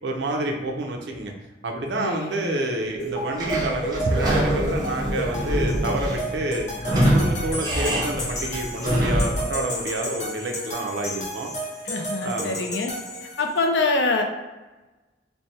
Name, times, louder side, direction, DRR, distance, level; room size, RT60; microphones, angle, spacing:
voice 1, 0.0-1.3 1.6-6.7 7.1-11.5 12.2-12.6, right 1 dB, 75° right, 1 dB, 0.7 m, -28 dB
voice 2, 2.0-2.6 11.8-14.2, left 3 dB, 75° left, 4 dB, 0.5 m, -25 dB
sound 1, 3.0-13.6, right 1 dB, 40° left, 1.0 m, -32 dB
Sliding door / Squeak, 3.3-9.5, equal, 25° right, 0.8 m, -25 dB
3.3 x 2.2 x 4.1 m, 1.2 s
head